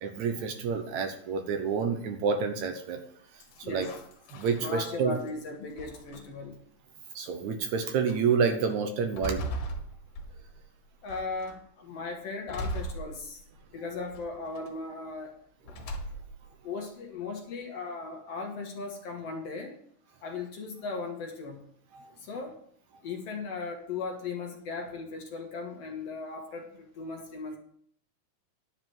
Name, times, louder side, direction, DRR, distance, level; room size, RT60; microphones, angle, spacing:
voice 1, 0.0-3.0 3.7-3.9 4.3-5.2 7.2-9.5 21.9-22.1, right 6 dB, 70° right, 6 dB, 2.1 m, -28 dB
sound 1, 3.4-5.3 5.8-6.5 7.3-7.4 7.8-8.2 8.7-10.6 11.1-11.6 12.5-13.6 14.1-14.7 15.6-16.5, right 1 dB, 75° left, 2.9 m, -39 dB
voice 2, 4.6-6.6 11.0-13.4 13.7-15.3 16.6-19.8 20.2-21.6 22.2-22.6 23.0-27.6, left 4 dB, 55° left, 2 dB, 2.2 m, -37 dB
11.0 x 4.9 x 7.6 m, 0.63 s
omnidirectional pair, 3.8 m